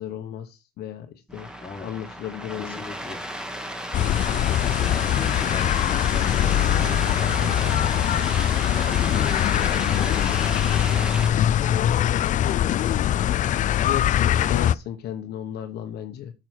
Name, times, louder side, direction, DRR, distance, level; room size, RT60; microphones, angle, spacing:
voice 1, 0.0-1.5 1.8-2.8 13.8-16.3, left 10 dB, 70° left, 1.1 m, -34 dB
sound 1, 1.3-11.3, equal, 5° right, 1.9 m, -34 dB
voice 2, 1.4-1.9 2.6-3.2 4.0-7.9 8.6-11.4, left 5 dB, 30° left, 2.0 m, -39 dB
sound 2, 3.9-14.8, left 11 dB, 50° left, 0.4 m, -22 dB
sound 3, 4.8-9.7, right 5 dB, 55° right, 2.0 m, -41 dB
9.0 x 6.4 x 4.5 m
cardioid pair, 110°, 17 cm